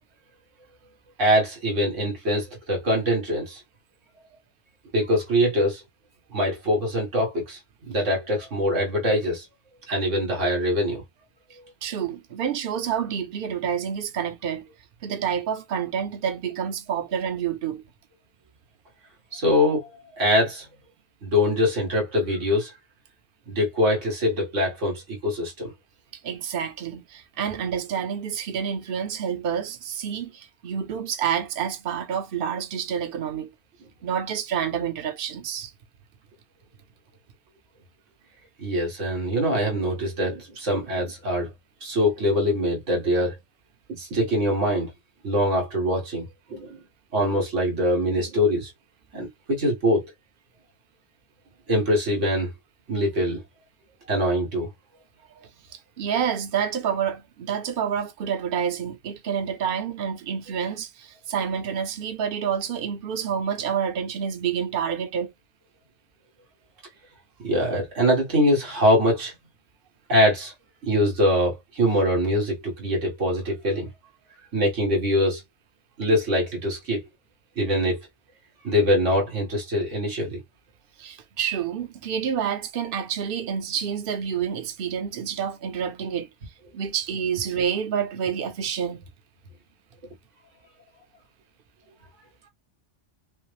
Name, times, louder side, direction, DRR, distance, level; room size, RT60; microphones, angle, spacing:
voice 1, 1.2-3.6 4.9-5.8 6.3-7.6 7.9-9.5 9.9-11.0 19.3-20.7 21.2-22.7 23.5-25.7 38.6-41.5 41.8-43.3 43.9-44.9 45.2-46.8 47.1-48.7 49.1-50.0 51.7-52.5 52.9-53.4 54.1-54.7 67.4-69.3 70.1-70.5 70.8-73.9 74.5-75.4 76.0-77.0 77.6-78.0 78.6-80.4, equal, 90° right, 2.0 m, -23 dB
voice 2, 11.8-14.7 15.0-17.8 26.2-33.5 34.0-35.7 55.4-65.3 81.0-86.3 86.7-89.0, right 8 dB, 55° right, 0.9 m, -28 dB
5.6 x 2.0 x 3.3 m
omnidirectional pair, 1.2 m